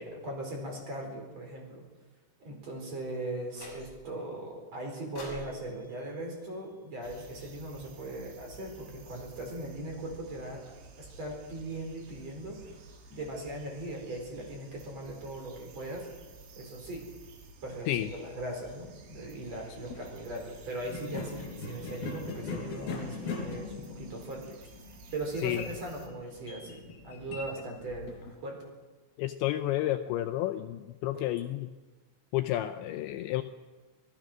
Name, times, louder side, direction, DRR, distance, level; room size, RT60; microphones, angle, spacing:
voice 1, 0.0-1.8 2.4-10.6 10.9-12.7 13.1-16.1 16.5-17.0 17.6-24.7 25.1-28.2 28.4-28.6, right 1 dB, 35° right, 1 dB, 5.2 m, -39 dB
sound 1, 3.5-4.2 5.1-7.4, equal, 25° left, 7.4 m, -48 dB
sound 2, 7.0-26.1, right 3 dB, 75° right, 4.9 m, -53 dB
sound 3, 19.8-20.1 20.8-28.3, left 4 dB, 50° left, 5.7 m, -40 dB
voice 2, 29.2-31.7 32.3-33.4, left 14 dB, 80° left, 8 dB, 2.8 m, -31 dB
27.0 x 18.0 x 6.2 m, 1.2 s
omnidirectional pair, 5.7 m